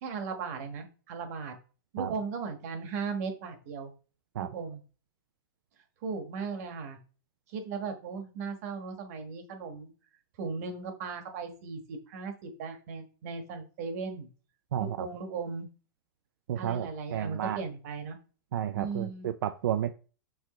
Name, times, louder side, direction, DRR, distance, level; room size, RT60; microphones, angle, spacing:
voice 1, 0.0-1.5 1.9-3.9 4.4-4.8 6.0-7.0 7.5-9.9 10.4-14.3 14.8-15.7 16.6-18.2 18.7-19.3, right 5 dB, 45° right, 6 dB, 1.5 m, -37 dB
voice 2, 14.7-15.1 16.5-17.6 18.5-19.9, right 10 dB, 75° right, 9 dB, 0.5 m, -32 dB
6.3 x 6.1 x 3.1 m, 0.36 s
supercardioid pair, 170°, 11 cm